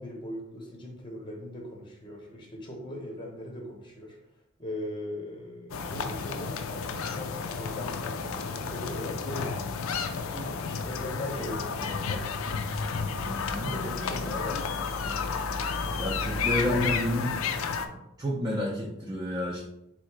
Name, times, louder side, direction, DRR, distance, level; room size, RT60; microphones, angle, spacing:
voice 1, 0.0-4.2 4.6-9.6 10.1-12.3 13.7-14.7, left 1 dB, 20° left, 1 dB, 0.8 m, -39 dB
sound 1, 5.7-17.9, left 5 dB, 70° left, 0.4 m, -32 dB
voice 2, 13.3-13.7 16.0-17.4 18.2-19.6, left 1 dB, 20° right, -4 dB, 0.5 m, -30 dB
3.6 x 2.8 x 4.6 m, 0.82 s
head